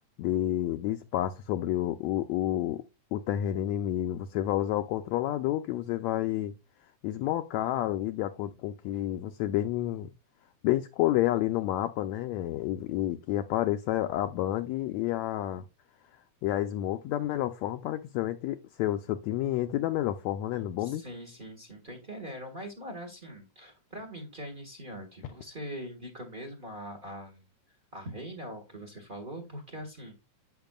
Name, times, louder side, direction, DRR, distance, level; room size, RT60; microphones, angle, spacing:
voice 1, 0.2-2.8 3.1-6.5 7.0-10.1 10.6-15.6 16.4-21.0, left 13 dB, 80° left, 1.7 m, -30 dB
voice 2, 20.8-27.4 27.9-30.1, equal, 30° right, 1.0 m, -42 dB
10.5 x 8.1 x 2.3 m
omnidirectional pair, 3.4 m